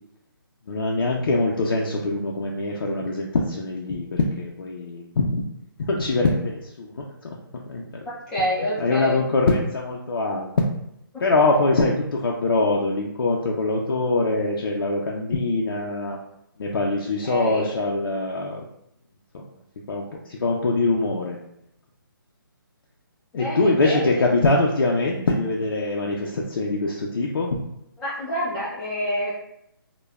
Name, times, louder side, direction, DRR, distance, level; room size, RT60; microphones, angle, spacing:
voice 1, 0.7-5.4 5.8-7.8 8.8-10.5 11.2-16.2 16.6-18.6 19.3-19.4 19.9-21.4 23.3-27.6, left 2 dB, 70° left, -2 dB, 0.4 m, -23 dB
voice 2, 8.0-9.2 17.2-17.7 23.3-24.3 28.0-29.3, equal, 5° left, -9 dB, 0.4 m, -28 dB
3.1 x 2.1 x 2.3 m, 0.77 s
hypercardioid pair, 165°, 12 cm